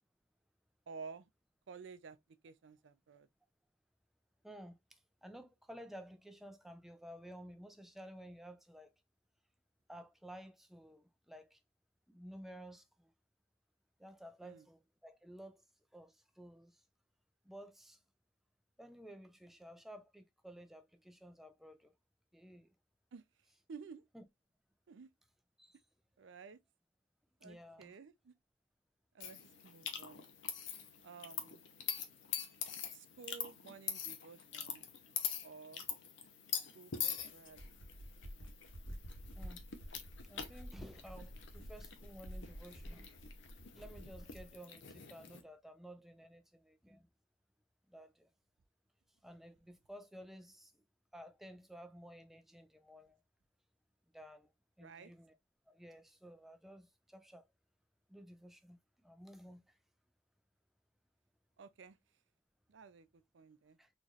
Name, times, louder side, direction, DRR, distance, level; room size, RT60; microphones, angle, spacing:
voice 1, 0.9-1.3 1.7-2.2 2.4-3.3 14.4-14.7 23.1-23.2 23.7-24.0 24.9-25.1 26.2-26.6 27.4-28.3 29.1-30.3 31.0-31.6 32.9-34.8 35.4-35.8 36.6-37.7 38.4-38.5 54.8-55.1 61.6-62.0 62.7-63.8, right 5 dB, 65° right, 0.4 m, -53 dB
voice 2, 4.4-8.9 9.9-11.6 12.1-13.1 14.0-15.6 15.9-16.8 17.4-18.0 18.8-21.9 22.3-22.7 24.1-24.2 25.6-25.8 27.4-28.0 39.3-39.6 40.3-43.1 43.6-47.1 47.9-48.3 49.2-50.8 51.1-53.2 54.1-54.5 54.8-55.4 55.7-57.5 58.1-59.8 63.8-63.9, equal, ahead, 0.4 m, -54 dB
sound 1, 29.2-45.4, left 8 dB, 70° left, 0.7 m, -44 dB
sound 2, 37.5-44.5, equal, 85° left, 1.3 m, -50 dB
4.0 x 3.0 x 2.4 m
head